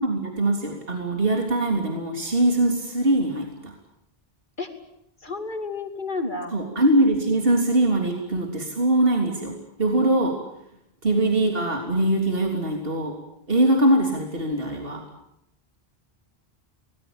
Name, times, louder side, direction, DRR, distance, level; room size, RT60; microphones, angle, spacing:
voice 1, 0.0-3.8 6.5-10.4 11.0-13.2 13.5-15.0, right 1 dB, 65° right, 2 dB, 3.6 m, -22 dB
voice 2, 5.2-6.5, left 3 dB, 50° left, 6 dB, 3.0 m, -31 dB
26.5 x 19.5 x 8.9 m, 0.78 s
omnidirectional pair, 1.0 m